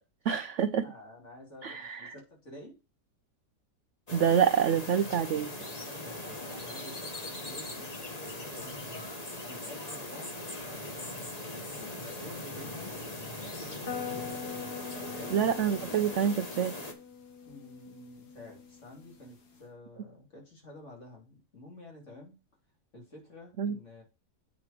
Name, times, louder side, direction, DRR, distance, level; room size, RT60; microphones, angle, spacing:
voice 1, 0.2-0.8 1.6-2.1 4.1-5.5 15.3-16.7 23.6-23.8, right 8 dB, 70° right, 10 dB, 0.7 m, -27 dB
voice 2, 0.8-2.8 5.9-7.9 8.5-9.1 9.4-11.2 11.7-14.4 15.1-15.4 17.5-22.4 22.9-24.0, left 1 dB, 40° left, 0 dB, 3.1 m, -50 dB
sound 1, 4.1-16.9, left 1 dB, 25° left, 1.3 m, -40 dB
sound 2, 13.9-19.6, left 7 dB, 65° left, 2.0 m, -43 dB
8.3 x 5.0 x 4.9 m, 0.30 s
omnidirectional pair, 1.9 m